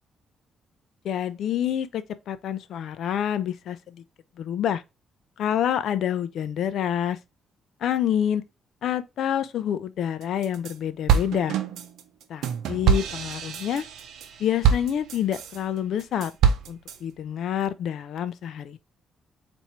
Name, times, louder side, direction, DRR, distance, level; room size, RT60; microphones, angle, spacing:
voice 1, 1.0-4.0 4.4-4.8 5.4-7.2 7.8-8.4 8.8-11.6 12.3-13.9 14.4-16.3 16.7-18.8, left 9 dB, 70° left, 0.5 m, -27 dB
sound 1, 10.2-10.7 11.1-15.6 16.0-17.0, right 7 dB, 80° right, 0.6 m, -25 dB
4.2 x 2.6 x 4.5 m
cardioid pair, 90°, 0 cm